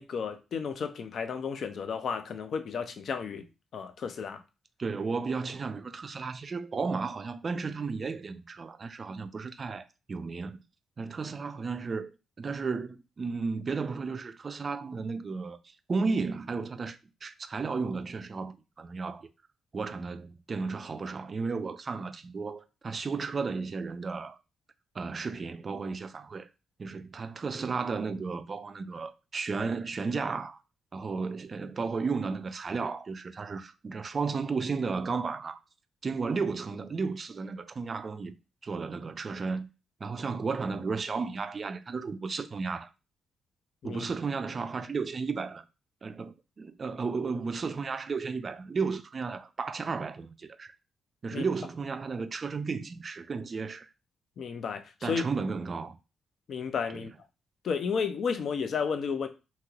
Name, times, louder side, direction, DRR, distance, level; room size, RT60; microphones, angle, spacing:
voice 1, 0.0-3.5 3.7-4.4 43.8-44.0 51.3-51.4 54.4-55.2 56.5-57.1 57.6-59.3, left 6 dB, 60° left, 0.4 m, -32 dB
voice 2, 4.8-10.6 11.0-12.1 12.4-15.6 15.9-19.3 19.7-24.4 24.9-26.5 26.8-30.6 30.9-35.6 36.0-38.3 38.6-39.7 40.0-42.9 43.8-45.6 46.0-50.8 51.2-53.9 55.0-56.0 56.9-57.0, right 4 dB, 40° right, 0.3 m, -33 dB
3.0 x 2.8 x 2.4 m
cardioid pair, 90°, 0 cm